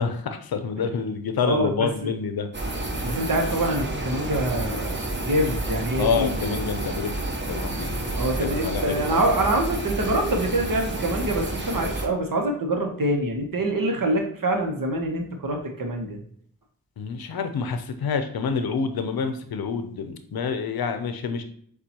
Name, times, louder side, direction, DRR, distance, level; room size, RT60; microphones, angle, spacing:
voice 1, 0.0-2.5 6.0-7.1 7.5-8.0 8.4-9.3 17.0-21.4, left 6 dB, 80° left, 8 dB, 0.6 m, -27 dB
voice 2, 1.4-2.1 3.0-6.6 8.1-16.2, right 1 dB, 65° right, 2 dB, 0.9 m, -25 dB
sound 1, 2.5-12.1, right 2 dB, 30° right, 0.9 m, -30 dB
6.7 x 2.4 x 2.9 m, 0.63 s
cardioid pair, 45°, 36 cm